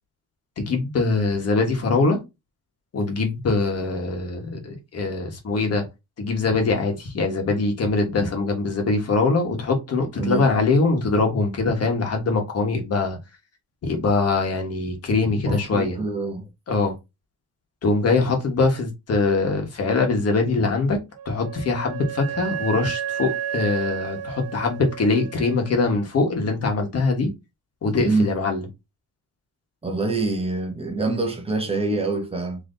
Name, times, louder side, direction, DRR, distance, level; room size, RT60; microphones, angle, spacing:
voice 1, 0.6-2.2 2.9-5.8 6.2-13.2 13.8-16.0 16.7-16.9 17.8-21.0 21.2-27.3 27.8-28.7, left 3 dB, 50° left, 1.4 m, -22 dB
voice 2, 15.5-16.5 28.0-28.4 29.8-32.6, right 3 dB, 20° right, 1.0 m, -25 dB
Wind instrument woodwind instrument, 21.1-25.8, right 9 dB, 50° right, 0.8 m, -32 dB
3.9 x 3.2 x 3.9 m
cardioid pair, 150°, 32 cm